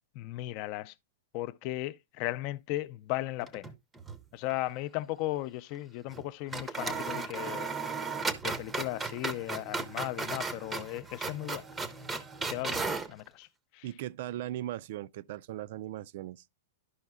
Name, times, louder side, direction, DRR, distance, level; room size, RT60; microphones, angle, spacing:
voice 1, 0.2-0.9 1.3-3.7 4.3-7.7 8.4-11.6 12.5-13.5 13.7-13.8, left 16 dB, 40° left, 0.5 m, -36 dB
sound 1, 3.4-4.2 4.5-4.6 6.1-6.2 6.5-13.1, right 4 dB, 10° right, 0.6 m, -36 dB
voice 2, 13.8-16.4, right 13 dB, 50° right, 0.4 m, -38 dB
12.0 x 5.4 x 2.3 m
supercardioid pair, 155°, 0 cm